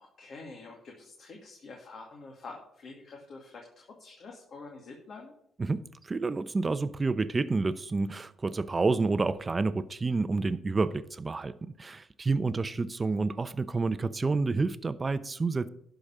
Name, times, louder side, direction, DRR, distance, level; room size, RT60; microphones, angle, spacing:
voice 1, 0.0-5.3, left 3 dB, 55° left, 2.3 m, -47 dB
voice 2, 5.6-15.7, right 3 dB, 30° right, 0.8 m, -29 dB
11.5 x 5.2 x 7.3 m
cardioid pair, 90°, 0 cm